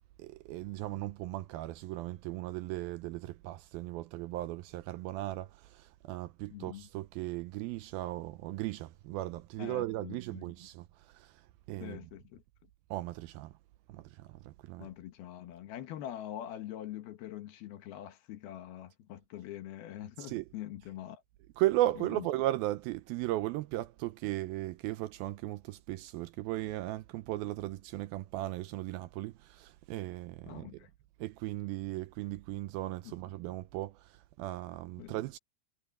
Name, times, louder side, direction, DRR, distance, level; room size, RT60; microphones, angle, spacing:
voice 1, 0.2-11.4 11.7-12.0 12.9-13.5 13.9-14.9 20.3-20.4 21.6-30.7 31.2-35.4, right 16 dB, 80° right, 2.3 m, -36 dB
voice 2, 6.5-6.9 9.6-10.5 11.8-12.4 14.8-21.2 22.0-22.3 30.5-30.9 33.0-33.4 35.0-35.1, left 12 dB, 75° left, 3.2 m, -44 dB
omnidirectional pair, 4.6 m